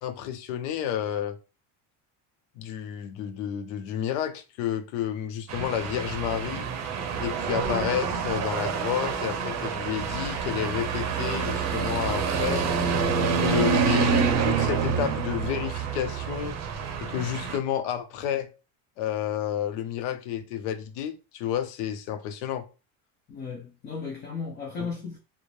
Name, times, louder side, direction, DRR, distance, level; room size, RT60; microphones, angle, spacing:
voice 1, 0.0-1.4 2.6-6.7 7.2-12.8 13.4-16.6 17.0-18.5 19.0-22.7 24.8-24.9, left 10 dB, 85° left, 0.6 m, -30 dB
sound 1, 5.5-17.6, right 6 dB, 50° right, 0.6 m, -27 dB
voice 2, 23.3-25.2, left 5 dB, 30° left, 0.5 m, -35 dB
2.5 x 2.0 x 3.1 m
cardioid pair, 140°, 36 cm